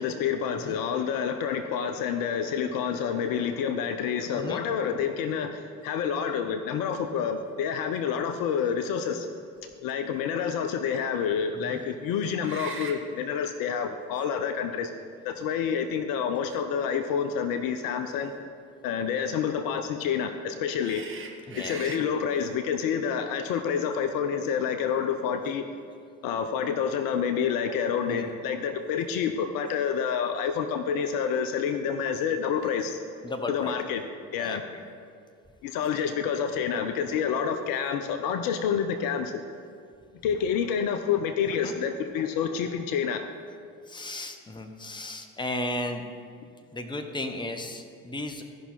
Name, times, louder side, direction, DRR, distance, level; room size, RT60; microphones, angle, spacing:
voice 1, 0.0-9.3 9.8-14.9 15.2-18.3 18.8-21.1 21.6-25.6 26.2-33.0 33.5-34.0 34.3-34.6 35.6-39.4 40.2-43.3, left 7 dB, 50° left, 7 dB, 0.7 m, -28 dB
sound 1, 7.2-7.3 7.8-7.9 12.4-13.0 14.2-14.3 15.3-16.1 18.1-18.3 20.8-22.0, right 5 dB, 30° right, 1.2 m, -41 dB
voice 2, 21.5-21.9 28.1-28.3 33.2-34.0 34.4-34.8 41.6-41.7 43.9-46.0 46.7-48.4, left 1 dB, 10° left, 6 dB, 0.9 m, -35 dB
14.5 x 5.6 x 4.2 m, 2.3 s
figure-of-eight pair, 55°, 43 cm